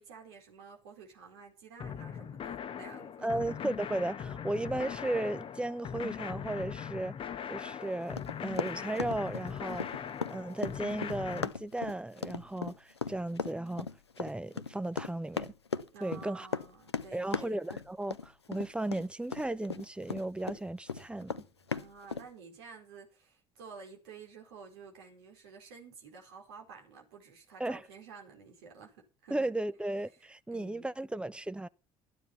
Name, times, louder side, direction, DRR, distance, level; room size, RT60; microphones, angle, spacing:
voice 1, 0.0-3.6 15.9-17.6 21.7-29.5 30.5-30.9, right 5 dB, 70° right, 4.4 m, -51 dB
sound 1, 1.8-11.5, left 8 dB, 40° left, 1.1 m, -40 dB
voice 2, 3.2-7.2 7.5-9.9 10.3-13.9 14.2-15.5 16.0-16.5 17.1-21.4 27.6-27.8 29.3-31.7, right 1 dB, 5° right, 0.8 m, -35 dB
Run, 8.2-20.6 20.9-22.3, left 5 dB, 85° left, 0.6 m, -37 dB
13.5 x 9.6 x 5.8 m
figure-of-eight pair, 55°, 14 cm